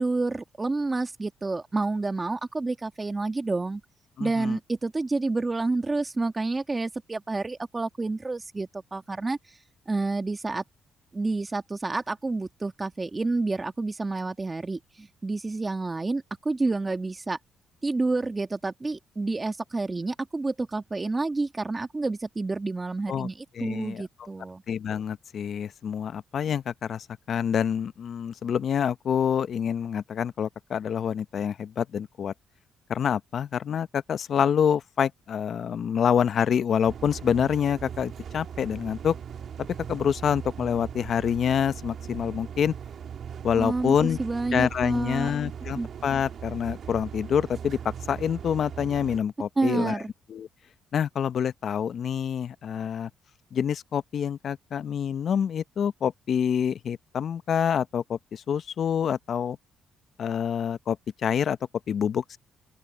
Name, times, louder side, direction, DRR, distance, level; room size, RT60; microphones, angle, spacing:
voice 1, 0.0-3.8 4.2-9.4 9.9-10.6 11.1-17.4 17.8-24.6 43.5-45.3 45.8-45.9 49.6-50.1, right 3 dB, 25° right, 1.6 m, -29 dB
voice 2, 4.2-4.6 23.1-23.3 23.5-24.0 24.7-32.3 32.9-39.2 39.9-42.7 43.4-44.2 44.5-47.8 48.1-50.0 50.3-50.5 50.9-53.1 53.5-59.6 60.2-61.0 61.2-61.6 61.9-62.4, left 8 dB, 60° left, 0.6 m, -27 dB
sound 1, 36.9-49.2, right 8 dB, 60° right, 1.7 m, -39 dB
open air
cardioid pair, 90°, 0 cm